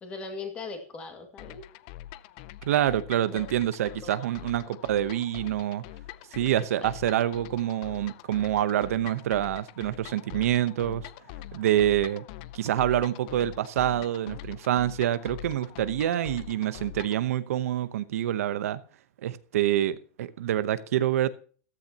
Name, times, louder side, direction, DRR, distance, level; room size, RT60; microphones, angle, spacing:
voice 1, 0.0-1.7 3.3-3.5 4.0-4.3 4.7-4.8 6.8-6.9, left 4 dB, 15° left, 2.1 m, -39 dB
sound 1, 1.4-17.2, left 14 dB, 35° left, 0.5 m, -44 dB
voice 2, 2.6-5.8 6.3-11.1 11.5-12.2 12.5-18.8 19.2-21.3, right 12 dB, 70° right, 0.9 m, -26 dB
14.5 x 13.5 x 2.9 m
supercardioid pair, 180°, 8 cm